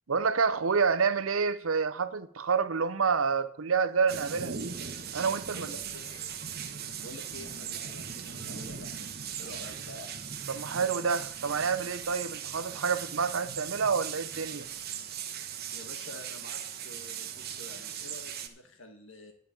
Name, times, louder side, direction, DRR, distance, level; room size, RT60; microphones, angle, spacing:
voice 1, 0.1-4.8 5.1-5.7 10.5-14.7, right 5 dB, 85° right, 0.8 m, -28 dB
sound 1, 4.1-18.5, right 8 dB, 50° right, 1.2 m, -39 dB
voice 2, 5.5-6.4 7.0-9.1 9.4-10.1 15.7-19.3, left 1 dB, 75° left, 2.4 m, -48 dB
11.5 x 5.4 x 8.9 m
head